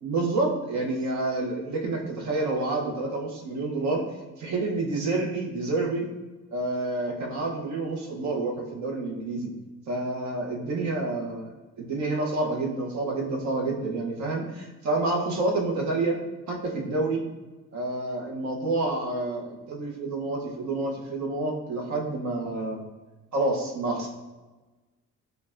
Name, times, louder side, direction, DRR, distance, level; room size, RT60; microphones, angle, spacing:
voice 1, 0.0-4.0 4.4-6.1 6.5-9.5 9.9-11.5 11.8-16.2 16.5-17.2 17.7-22.8 23.3-24.1, right 2 dB, 65° right, 0 dB, 0.9 m, -28 dB
5.2 x 2.3 x 2.5 m, 1.2 s
cardioid pair, 90°, 30 cm